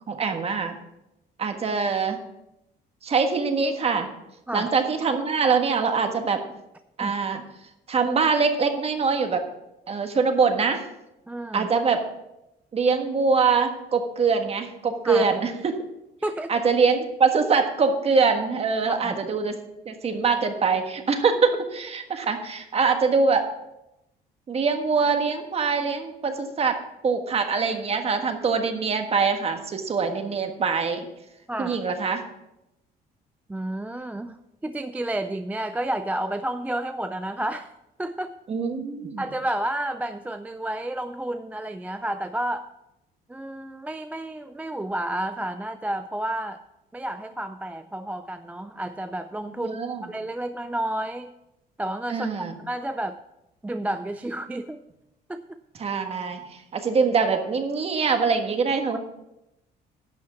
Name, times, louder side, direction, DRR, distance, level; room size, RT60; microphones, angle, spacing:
voice 1, 0.1-0.8 1.4-2.2 3.0-4.1 4.5-6.4 7.0-7.4 7.9-9.4 9.9-10.8 11.5-12.0 12.7-15.8 16.5-19.6 19.8-23.5 24.5-31.1 31.6-32.2 38.5-39.2 49.6-50.0 52.1-52.5 55.8-56.4 56.7-59.0, right 5 dB, 35° right, 6 dB, 1.5 m, -23 dB
voice 2, 11.3-11.7 15.0-15.3 16.2-16.5 18.9-19.2 31.5-31.8 33.5-37.7 38.0-38.3 39.2-42.7 43.3-46.6 46.9-51.3 51.8-53.2 53.6-54.8 55.3-55.6, right 1 dB, 10° right, 9 dB, 0.4 m, -31 dB
11.5 x 6.3 x 6.0 m, 0.89 s
cardioid pair, 110°, 17 cm